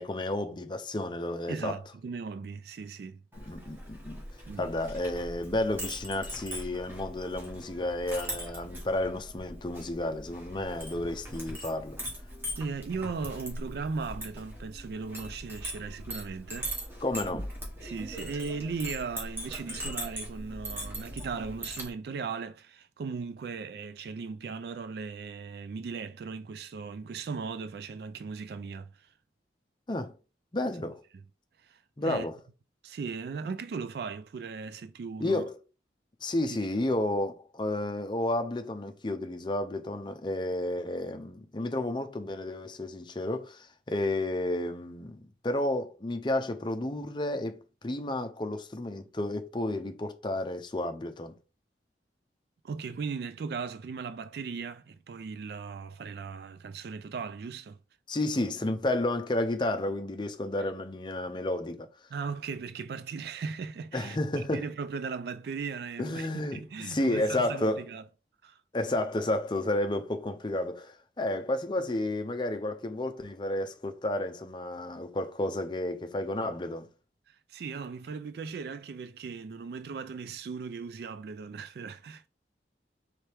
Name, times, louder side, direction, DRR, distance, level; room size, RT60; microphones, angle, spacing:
voice 1, 0.0-1.8 3.5-4.2 4.6-12.0 17.0-17.5 29.9-30.1 30.5-31.0 32.0-32.4 35.2-35.6 36.2-51.3 58.1-61.9 63.9-64.6 66.0-67.8 68.7-76.9, left 1 dB, 25° left, 0.5 m, -31 dB
voice 2, 1.5-3.2 4.5-4.6 12.6-16.8 17.8-29.1 31.6-32.3 32.8-35.4 36.5-36.6 52.6-57.8 62.1-68.0 68.4-68.6 77.3-82.3, right 5 dB, 60° right, 0.3 m, -37 dB
Chink clink, 3.3-21.9, equal, 10° right, 1.5 m, -40 dB
4.6 x 3.2 x 3.4 m
head